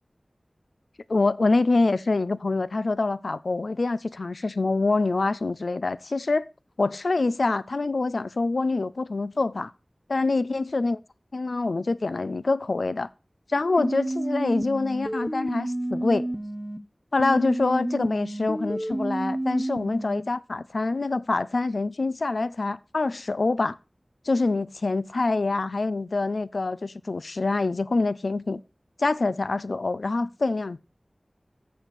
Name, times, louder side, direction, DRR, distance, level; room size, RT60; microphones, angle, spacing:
voice 1, 1.1-6.5 6.8-9.7 10.1-11.0 11.3-13.1 13.5-16.3 17.1-23.8 24.3-28.6 29.0-30.8, left 3 dB, 85° left, 0.5 m, -25 dB
sound 1, 13.8-16.8 17.2-20.2, right 1 dB, 20° right, 1.1 m, -30 dB
12.0 x 7.2 x 4.1 m
wide cardioid pair, 55°, 0 cm